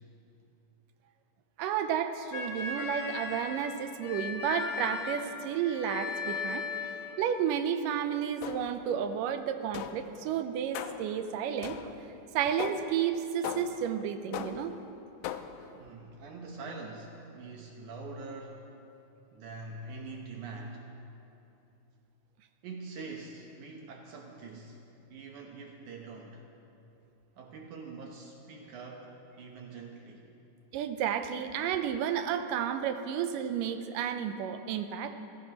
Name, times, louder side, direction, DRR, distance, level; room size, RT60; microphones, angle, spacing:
voice 1, 1.6-6.7 7.2-12.0 12.3-14.8 30.7-35.1, right 8 dB, 90° right, 8 dB, 2.3 m, -32 dB
sound 1, 2.3-7.1, left 4 dB, 45° left, 2.6 m, -37 dB
sound 2, 8.4-8.9 9.7-10.2 10.7-11.2 11.6-12.1 12.6-13.0 13.4-13.9 14.3-14.8 15.2-15.7, left 9 dB, 80° left, 2.0 m, -39 dB
voice 2, 15.7-18.7 19.3-20.9 22.6-24.8 25.1-26.4 27.4-30.2, right 3 dB, 70° right, 0 dB, 2.4 m, -44 dB
28.5 x 16.5 x 3.0 m, 2.9 s
omnidirectional pair, 3.8 m